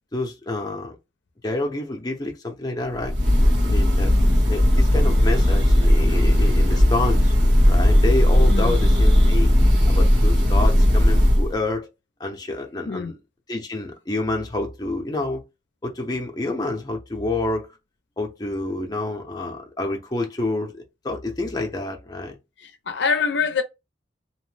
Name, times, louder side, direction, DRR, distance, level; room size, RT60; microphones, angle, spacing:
voice 1, 0.1-1.0 1.4-3.1 3.6-4.1 4.5-7.3 7.7-9.6 9.9-11.9 12.2-13.2 13.5-15.4 15.8-17.7 18.2-22.4, left 2 dB, 20° left, 0.5 m, -28 dB
Breathing / Bird, 3.0-11.5, left 1 dB, 75° right, 1.5 m, -17 dB
voice 2, 22.6-23.6, left 5 dB, 75° left, 0.5 m, -25 dB
2.8 x 2.1 x 3.1 m
head